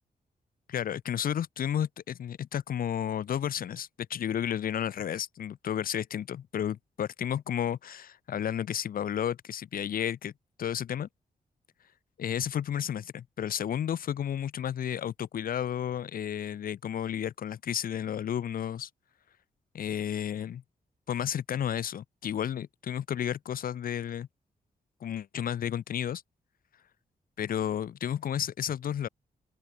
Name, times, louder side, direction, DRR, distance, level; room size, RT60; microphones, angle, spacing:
voice 1, 0.7-10.3 10.6-11.1 12.2-18.9 19.7-20.6 21.1-24.3 25.0-26.2 27.4-29.1, left 9 dB, 70° left, 0.8 m, -32 dB
open air
wide cardioid pair, 135°, 16 cm